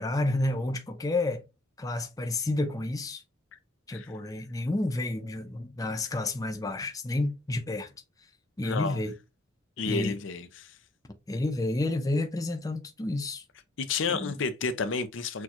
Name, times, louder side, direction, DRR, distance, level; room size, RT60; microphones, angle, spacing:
voice 1, 0.0-1.4 1.8-3.2 3.9-7.9 8.6-9.1 9.9-10.2 11.3-13.4 14.1-14.4, left 2 dB, 20° left, 0.4 m, -30 dB
voice 2, 8.6-9.0 9.8-10.7 13.8-15.4, left 4 dB, 65° left, 0.6 m, -31 dB
6.3 x 2.3 x 2.9 m
head